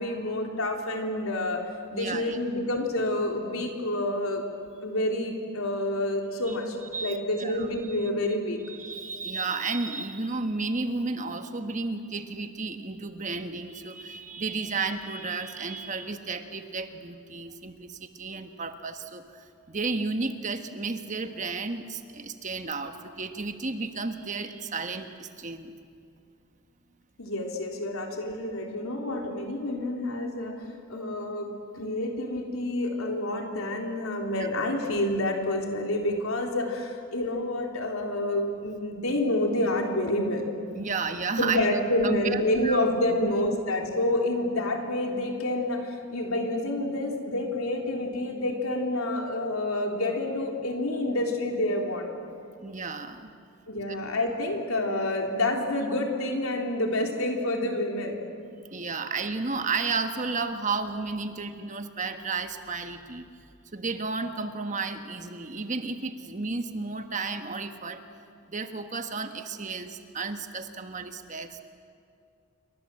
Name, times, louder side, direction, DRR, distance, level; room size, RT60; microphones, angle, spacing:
voice 1, 0.0-1.6 1.9-4.4 4.8-8.6 27.2-40.4 41.4-52.1 53.7-58.2, left 1 dB, 75° left, 2 dB, 3.7 m, -28 dB
voice 2, 1.9-2.4 6.5-6.6 6.9-7.7 8.0-8.1 8.6-25.7 34.4-34.5 40.7-41.7 42.0-42.8 43.2-43.3 52.6-53.3 53.9-54.0 58.7-63.2 63.7-68.0 68.5-71.6, right 4 dB, 35° right, 7 dB, 1.4 m, -33 dB
27.5 x 24.0 x 7.7 m, 2.4 s
head